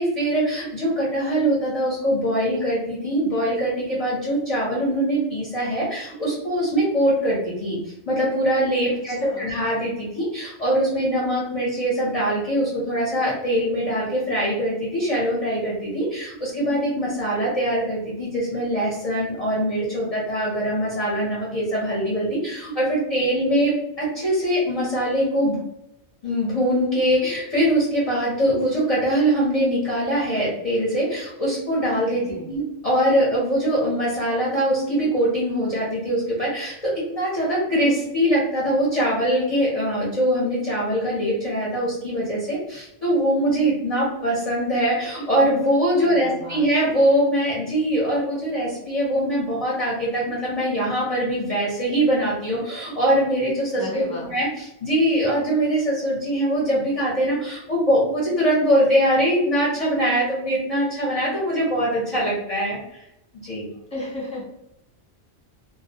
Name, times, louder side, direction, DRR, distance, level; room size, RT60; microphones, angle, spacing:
voice 1, 0.0-7.8 8.1-25.6 26.2-63.0 63.4-63.7, right 1 dB, 40° left, -6 dB, 0.7 m, -23 dB
voice 2, 9.1-9.5 32.2-32.5 46.0-46.6 53.7-54.3 63.9-64.4, left 1 dB, 5° left, -7 dB, 0.9 m, -34 dB
2.3 x 2.0 x 2.7 m, 0.82 s
omnidirectional pair, 1.2 m